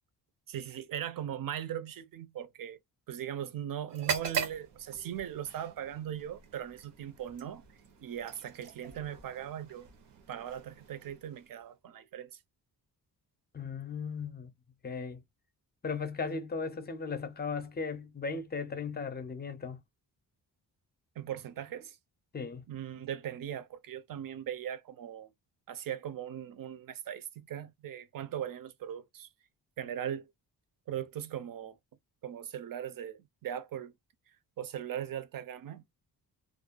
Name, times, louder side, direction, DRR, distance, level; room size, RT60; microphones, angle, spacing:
voice 1, 0.5-2.8 3.1-7.6 8.0-9.9 10.3-12.4 21.2-22.0 22.7-25.3 25.7-29.3 29.8-30.3 30.9-31.8 32.2-33.9 34.6-35.8, right 10 dB, 55° right, 0.5 m, -39 dB
sound 1, 3.9-11.7, right 7 dB, 85° right, 0.9 m, -41 dB
voice 2, 13.5-14.5 14.8-15.2 15.8-19.8 22.3-22.6, left 5 dB, 25° left, 0.5 m, -37 dB
2.5 x 2.2 x 2.4 m
wide cardioid pair, 145°, 41 cm